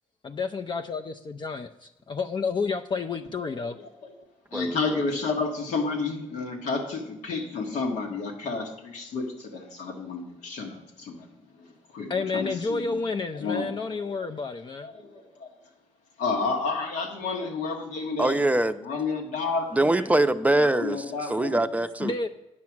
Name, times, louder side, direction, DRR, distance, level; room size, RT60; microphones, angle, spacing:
voice 1, 0.2-3.8 12.1-14.9 22.0-22.3, left 4 dB, 40° left, 0.5 m, -30 dB
voice 2, 3.5-4.1 4.5-13.0 13.3-14.1 14.8-15.5 16.2-18.4 18.8-20.1 20.6-21.5, left 4 dB, 85° left, 1.6 m, -31 dB
voice 3, 18.2-18.7 19.7-21.0 21.3-22.1, right 2 dB, 10° right, 0.6 m, -23 dB
9.6 x 6.1 x 6.0 m
cardioid pair, 70°, 12 cm